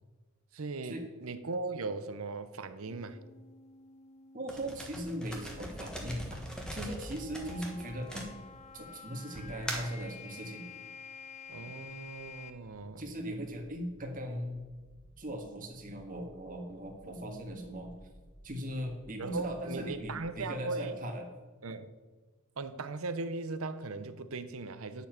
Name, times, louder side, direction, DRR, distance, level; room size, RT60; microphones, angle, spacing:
voice 1, 0.5-3.2 11.5-13.1 19.2-21.0 21.6-21.9 22.6-25.1, right 3 dB, 75° right, 11 dB, 0.7 m, -38 dB
sound 1, 2.9-12.5, left 5 dB, 30° left, 0.6 m, -51 dB
voice 2, 4.3-6.2 6.7-8.3 8.7-10.7 13.0-14.6 15.2-17.9 18.4-21.3, equal, 40° right, 2 dB, 1.7 m, -39 dB
sound 2, 4.5-8.8 9.3-10.0, equal, 5° left, 1.4 m, -41 dB
sound 3, 11.5-20.4, equal, 15° right, 0.9 m, -59 dB
9.8 x 7.0 x 5.9 m, 1.3 s
head